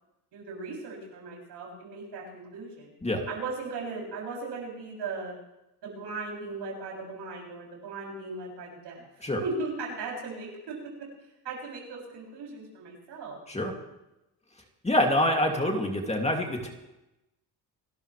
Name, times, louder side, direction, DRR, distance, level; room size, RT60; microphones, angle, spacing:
voice 1, 0.3-2.9 3.3-5.4 5.8-9.1 9.4-11.1 11.4-13.4, right 3 dB, 80° right, -2 dB, 7.4 m, -37 dB
voice 2, 14.8-16.7, left 1 dB, 15° left, 2 dB, 2.5 m, -26 dB
28.0 x 12.5 x 3.3 m, 0.93 s
cardioid pair, 100°, 41 cm